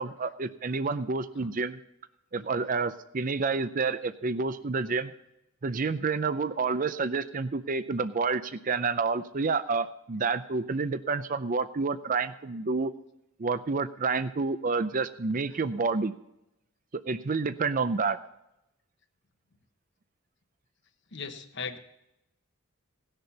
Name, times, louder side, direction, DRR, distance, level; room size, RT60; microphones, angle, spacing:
voice 1, 0.0-1.8 2.3-5.1 5.6-12.9 13.4-16.1 17.1-18.2, right 4 dB, 35° right, 12 dB, 0.5 m, -29 dB
voice 2, 21.1-21.8, left 5 dB, 55° left, 7 dB, 1.1 m, -37 dB
18.0 x 6.7 x 5.5 m, 0.86 s
head